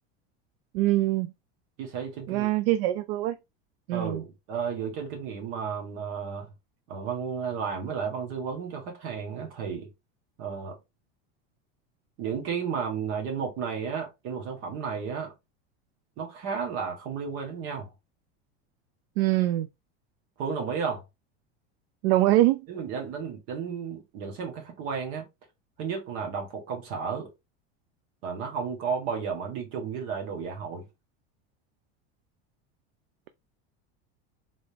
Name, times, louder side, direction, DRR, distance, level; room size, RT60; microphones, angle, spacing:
voice 1, 0.7-1.3 2.3-3.4 3.9-4.2 19.2-19.7 22.0-22.7, right 16 dB, 65° right, 0.5 m, -23 dB
voice 2, 1.8-2.5 3.9-6.5 6.9-9.9 10.4-10.8 12.2-15.3 16.2-17.9 20.4-21.0 22.7-25.2 25.8-27.3 28.2-30.9, right 6 dB, 45° right, 1.7 m, -33 dB
3.9 x 3.5 x 3.4 m
supercardioid pair, 175°, 32 cm